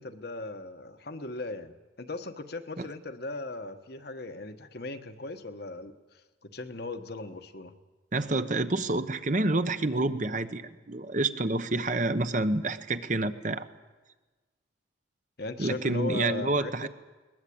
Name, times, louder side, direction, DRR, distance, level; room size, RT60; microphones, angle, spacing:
voice 1, 0.0-7.7 15.4-16.9, left 2 dB, 55° left, 7 dB, 1.3 m, -38 dB
voice 2, 8.1-13.7 15.6-16.9, right 2 dB, 40° right, 10 dB, 1.0 m, -28 dB
21.5 x 20.0 x 8.7 m, 1.2 s
head